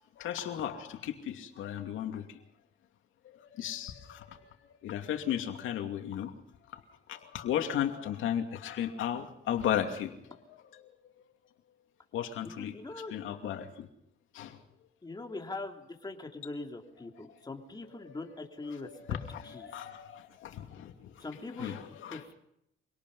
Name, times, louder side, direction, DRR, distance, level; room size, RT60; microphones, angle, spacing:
voice 1, 0.2-2.2 3.6-4.5 4.8-6.3 7.1-10.1 12.1-12.7 13.1-13.9 14.3-14.6 18.3-21.1 21.5-22.2, left 10 dB, 80° left, 5 dB, 2.7 m, -35 dB
voice 2, 12.4-13.2 15.0-18.9 19.4-19.7 21.2-21.8 22.1-22.3, left 3 dB, 20° left, 2 dB, 3.2 m, -42 dB
25.5 x 18.5 x 5.6 m, 0.76 s
cardioid pair, 90°, 20 cm